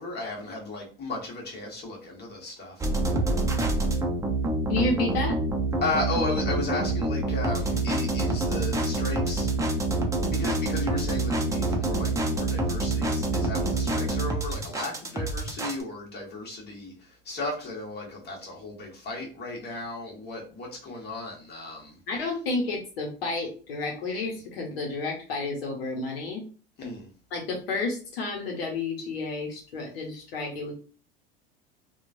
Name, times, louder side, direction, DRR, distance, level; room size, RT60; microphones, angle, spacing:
voice 1, 0.0-2.8 5.8-9.7 10.0-22.0 26.8-27.1, left 2 dB, 35° left, 1.3 m, -35 dB
sound 1, 2.8-15.8, right 2 dB, 10° right, 0.6 m, -27 dB
voice 2, 4.7-5.4 22.1-26.4 27.3-30.7, left 3 dB, 80° left, 0.8 m, -30 dB
3.0 x 2.3 x 2.5 m
hypercardioid pair, 80°, 30 cm